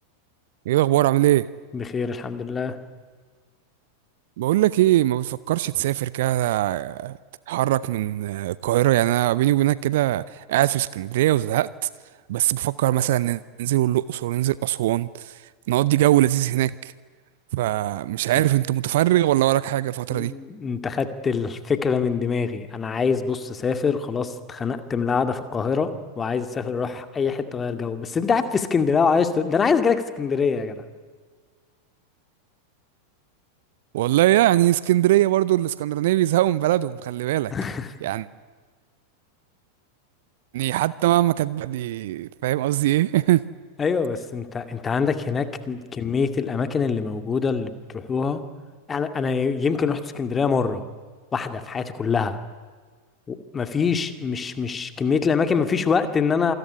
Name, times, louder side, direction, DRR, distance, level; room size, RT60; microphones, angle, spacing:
voice 1, 0.7-1.5 4.4-7.2 7.5-11.9 12.3-15.3 15.7-16.9 17.5-20.3 33.9-37.5 38.0-38.3 40.5-43.4, right 14 dB, 55° right, 19 dB, 0.7 m, -21 dB
voice 2, 1.7-2.8 20.1-25.9 26.2-30.8 37.5-37.9 43.8-48.4 48.9-50.8 51.3-52.4 53.3-56.5, left 5 dB, 20° left, 9 dB, 2.2 m, -24 dB
27.5 x 21.5 x 9.9 m, 1.5 s
figure-of-eight pair, 90°, 0 cm